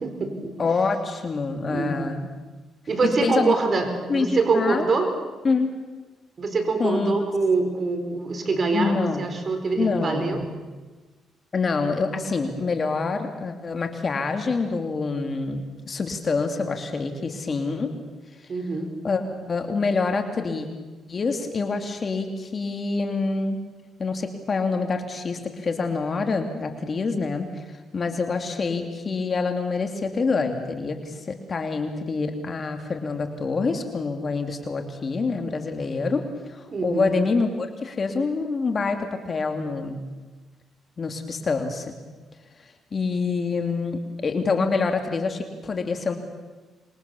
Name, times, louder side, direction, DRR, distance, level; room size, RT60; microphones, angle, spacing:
voice 1, 0.0-0.6 1.7-1.9 2.9-5.1 6.4-10.4 18.5-18.9 36.7-37.1, right 4 dB, 40° right, 5 dB, 4.6 m, -24 dB
voice 2, 0.6-2.3 3.0-3.5 4.1-4.8 5.4-5.7 6.8-7.2 8.7-9.3 9.8-10.6 11.5-17.9 19.0-20.7 21.1-23.6 24.0-40.0 41.0-41.9 42.9-46.2, left 4 dB, 40° left, 5 dB, 2.6 m, -26 dB
26.5 x 22.5 x 7.0 m, 1.3 s
cardioid pair, 90°, 0 cm